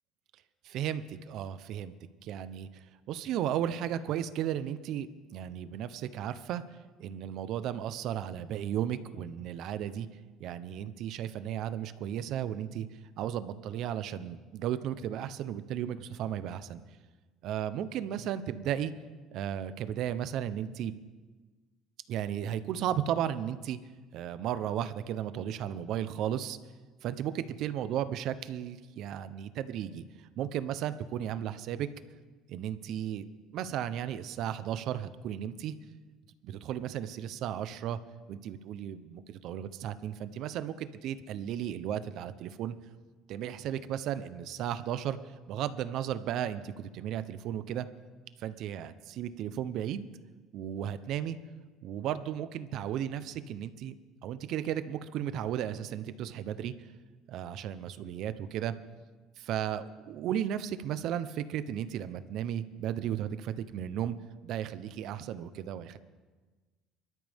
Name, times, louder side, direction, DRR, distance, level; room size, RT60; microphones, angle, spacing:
voice 1, 0.6-1.9 2.2-6.6 7.0-10.1 10.4-12.9 13.2-16.8 17.4-18.9 19.3-20.9 22.1-23.8 24.1-26.6 27.0-30.0 30.4-31.9 32.5-33.2 33.5-35.7 36.4-38.0 38.3-42.8 43.3-45.2 45.5-47.9 48.4-50.0 50.5-51.4 51.8-53.9 54.2-56.7 57.3-58.7 59.4-64.1 64.4-66.0, right 10 dB, 55° right, 13 dB, 0.8 m, -34 dB
24.0 x 13.0 x 3.6 m, 1.3 s
cardioid pair, 140°, 0 cm